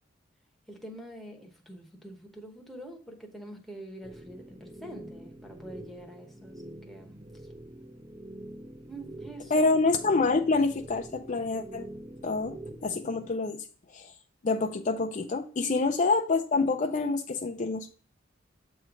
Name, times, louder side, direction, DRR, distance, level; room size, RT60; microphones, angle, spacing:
voice 1, 0.7-7.1 8.9-9.7 15.6-15.8, right 1 dB, ahead, 1.0 m, -45 dB
sound 1, 4.0-13.3, right 1 dB, 25° right, 0.7 m, -46 dB
voice 2, 9.5-11.8 12.2-13.7 13.9-14.1 14.4-17.9, left 3 dB, 40° left, 0.5 m, -27 dB
7.8 x 3.2 x 5.1 m
head